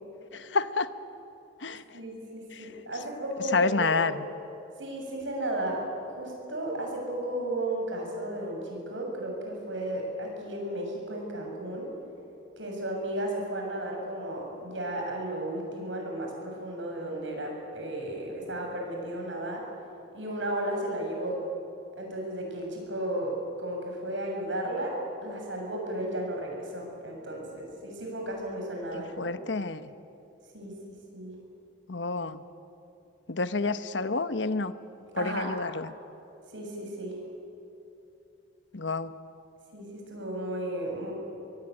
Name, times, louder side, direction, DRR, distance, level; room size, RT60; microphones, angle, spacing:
voice 1, 0.3-0.9 1.6-2.0 2.5-2.7 3.5-4.3 28.9-29.9 31.9-32.4 33.3-34.7 35.2-35.9 38.7-39.1, left 3 dB, 80° left, 12 dB, 1.1 m, -29 dB
voice 2, 1.9-4.0 4.8-11.9 12.6-19.7 20.1-21.4 22.0-29.4 30.5-30.7 31.1-31.3 35.2-35.5 36.5-37.2 39.7-41.1, right 1 dB, 85° right, 0 dB, 7.5 m, -34 dB
23.5 x 23.0 x 9.8 m, 2.8 s
head